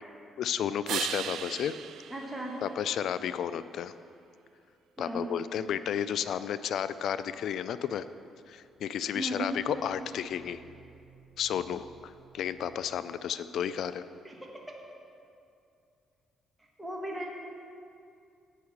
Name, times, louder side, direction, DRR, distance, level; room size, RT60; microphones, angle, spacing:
voice 1, 0.4-1.8 2.6-3.9 5.0-8.1 8.5-10.6 11.4-14.0, left 9 dB, 70° left, 14 dB, 0.3 m, -32 dB
sound 1, 0.9-3.4 9.2-13.2, right 9 dB, 75° right, 0.3 m, -41 dB
voice 2, 2.1-2.7 5.0-5.3 9.1-9.5 14.2-14.5 16.6-17.3, right 1 dB, 10° right, -2 dB, 1.4 m, -36 dB
8.1 x 5.7 x 7.1 m, 2.5 s
cardioid pair, 90°, 0 cm